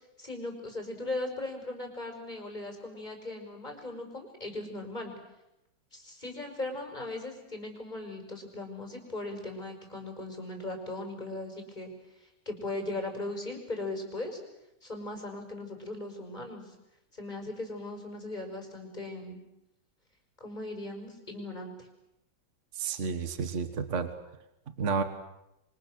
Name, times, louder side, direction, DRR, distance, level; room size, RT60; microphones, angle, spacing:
voice 1, 0.2-5.1 5.9-14.4 14.8-16.8 17.1-19.4 20.4-21.9, left 2 dB, 25° left, 3 dB, 5.9 m, -38 dB
voice 2, 22.7-24.1 24.8-25.0, right 5 dB, 45° right, 8 dB, 1.8 m, -30 dB
28.0 x 25.0 x 6.5 m, 0.88 s
omnidirectional pair, 1.8 m